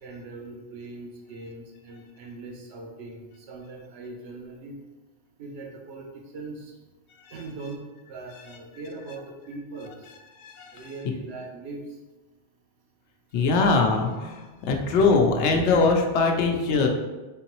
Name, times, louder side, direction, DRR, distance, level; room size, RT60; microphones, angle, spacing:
voice 1, 0.0-4.7 5.4-6.7 7.3-7.8 8.1-9.9 10.7-11.8, right 3 dB, 70° right, 2 dB, 0.9 m, -40 dB
voice 2, 10.4-10.9 13.3-16.9, left 4 dB, 75° left, 2 dB, 0.9 m, -22 dB
3.8 x 3.7 x 3.0 m, 1.2 s
omnidirectional pair, 1.2 m